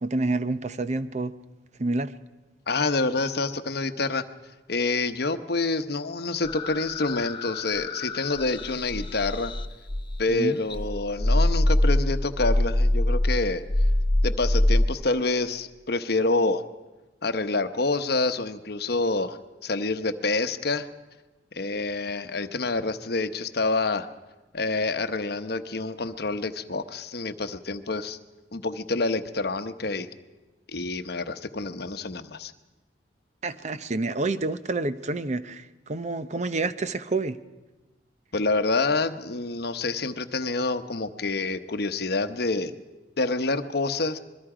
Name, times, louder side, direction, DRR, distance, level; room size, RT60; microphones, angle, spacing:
voice 1, 0.0-1.3 1.8-2.1 10.3-10.6 33.4-37.4, right 2 dB, 40° right, 12 dB, 0.7 m, -28 dB
voice 2, 2.7-4.2 4.7-9.5 10.2-13.6 14.2-16.6 17.2-20.9 21.5-24.1 24.5-28.2 28.5-30.1 30.7-32.5 38.3-42.7 43.2-44.2, left 3 dB, 60° left, 10 dB, 1.0 m, -27 dB
sound 1, 6.4-10.3 10.7-14.9, left 1 dB, 25° left, 0.8 m, -24 dB
25.5 x 21.5 x 5.0 m, 1.1 s
head